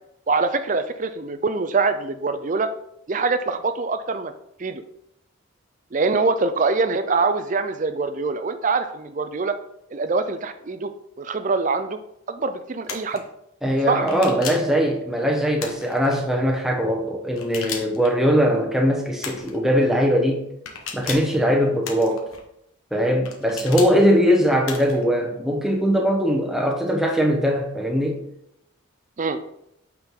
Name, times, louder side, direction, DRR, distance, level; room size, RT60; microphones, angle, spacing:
voice 1, 0.3-2.7 3.1-4.3 4.6-4.8 5.9-9.5 9.9-10.9 11.2-12.0 12.3-13.2 13.9-14.1 29.2-29.4, right 4 dB, 35° right, 10 dB, 0.4 m, -24 dB
sound 1, 12.8-13.2 14.1-14.7 15.6-16.2 17.3-18.1 19.2-19.6 20.7-21.4 21.8-22.4 23.3-23.9 24.6-25.0, left 6 dB, 80° left, 1.3 m, -34 dB
voice 2, 13.6-20.4 20.9-22.2 22.9-28.2, equal, ahead, 0 dB, 1.0 m, -21 dB
8.7 x 4.6 x 3.7 m, 0.78 s
head